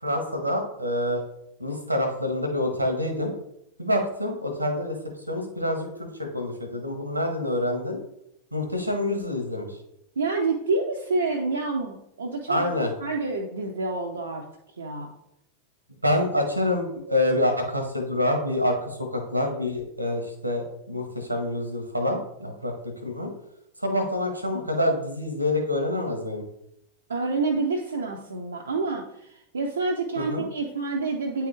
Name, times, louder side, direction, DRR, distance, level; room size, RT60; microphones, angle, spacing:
voice 1, 0.0-1.2 1.6-3.3 3.8-5.0 5.3-8.0 8.5-9.8 12.5-12.9 16.0-22.7 23.0-23.3 23.8-26.4 30.2-30.4, left 1 dB, 85° right, 5 dB, 1.0 m, -26 dB
voice 2, 10.2-12.7 13.0-14.5 14.8-15.1 27.1-31.5, right 3 dB, 70° right, 0 dB, 0.6 m, -28 dB
8.9 x 3.4 x 3.2 m, 0.79 s
figure-of-eight pair, 90°, 0 cm